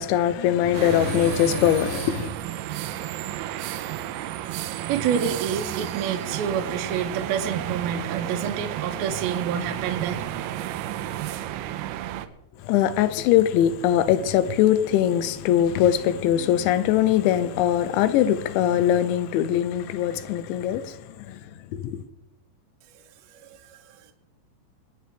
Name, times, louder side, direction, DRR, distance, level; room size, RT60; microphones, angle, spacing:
voice 1, 0.0-2.3 12.6-21.4 21.7-22.0, left 11 dB, 85° left, 2.9 m, -22 dB
sound 1, 0.7-12.3, right 12 dB, 85° right, 3.1 m, -32 dB
voice 2, 4.6-10.4 22.9-24.1, right 7 dB, 70° right, 2.5 m, -29 dB
24.5 x 9.4 x 3.4 m
omnidirectional pair, 5.4 m